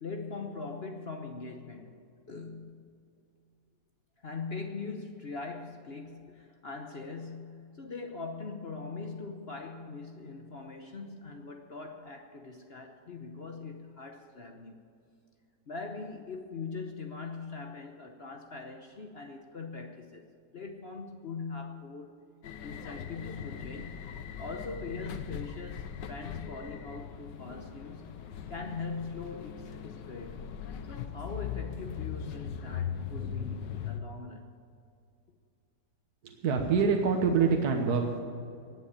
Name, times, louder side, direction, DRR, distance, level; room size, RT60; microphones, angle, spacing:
voice 1, 0.0-2.9 4.2-14.8 15.7-20.3 20.5-22.2 22.6-24.1 24.4-28.1 28.5-30.5 30.9-34.5, left 4 dB, 45° left, 4 dB, 1.0 m, -41 dB
sound 1, 22.4-34.0, left 8 dB, 85° left, 1.5 m, -40 dB
voice 2, 36.2-38.2, right 5 dB, 65° right, 3 dB, 1.6 m, -26 dB
18.0 x 7.8 x 8.7 m, 2.5 s
omnidirectional pair, 1.8 m